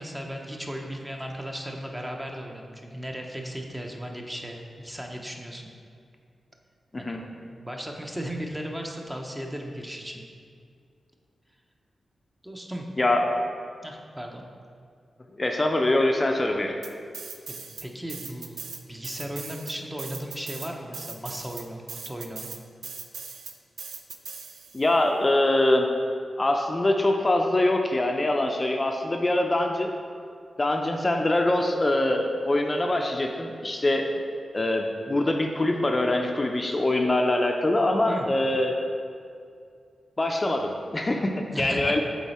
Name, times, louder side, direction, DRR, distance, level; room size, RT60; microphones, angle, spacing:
voice 1, 0.0-5.7 7.0-10.2 12.4-12.8 13.8-14.4 17.5-18.6 18.9-22.5 38.1-38.3 41.5-42.0, equal, 15° right, 1 dB, 0.8 m, -36 dB
voice 2, 15.4-16.7 24.7-25.9 26.4-29.9 30.6-34.1 34.5-38.7 40.2-42.0, left 1 dB, 35° left, 2 dB, 0.5 m, -24 dB
sound 1, 16.8-17.8 18.1-24.9, right 5 dB, 75° right, 0.5 m, -39 dB
7.3 x 4.0 x 4.3 m, 2.3 s
cardioid pair, 55°, 0 cm